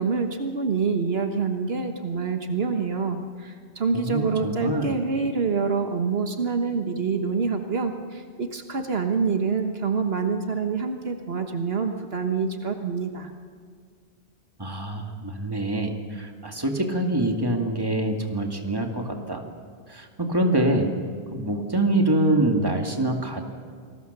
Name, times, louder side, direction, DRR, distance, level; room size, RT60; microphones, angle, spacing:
voice 1, 0.0-13.3, right 5 dB, 70° right, 5 dB, 1.5 m, -26 dB
voice 2, 3.9-4.9 14.6-19.4 19.9-20.9 21.3-23.5, right 1 dB, 20° right, 3 dB, 2.2 m, -25 dB
27.5 x 20.0 x 6.8 m, 2.1 s
omnidirectional pair, 1.1 m